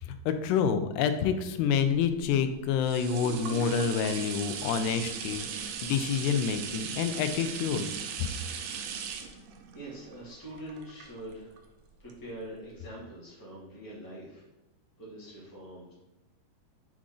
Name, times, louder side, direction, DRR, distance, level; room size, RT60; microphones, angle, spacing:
voice 1, 0.0-5.5 5.8-7.9 8.2-8.3, left 7 dB, 90° left, 9 dB, 2.6 m, -28 dB
sound 1, 2.2-11.6 12.1-12.2, right 6 dB, 80° right, 2.0 m, -38 dB
voice 2, 9.7-11.7 12.0-14.4 15.0-15.9, right 1 dB, 15° left, -7 dB, 0.7 m, -44 dB
7.6 x 3.7 x 3.7 m, 0.95 s
omnidirectional pair, 4.6 m